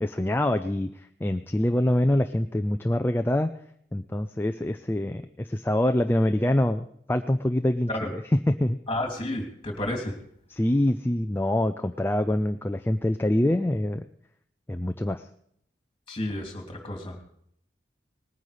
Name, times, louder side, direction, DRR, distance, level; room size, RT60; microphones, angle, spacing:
voice 1, 0.0-0.9 1.2-3.5 3.9-8.2 8.5-8.8 10.5-14.1 14.7-15.2, left 1 dB, 15° left, 7 dB, 0.4 m, -25 dB
voice 2, 8.9-10.2 16.1-17.2, left 1 dB, 30° left, 3 dB, 2.7 m, -31 dB
19.0 x 9.5 x 5.0 m, 0.68 s
head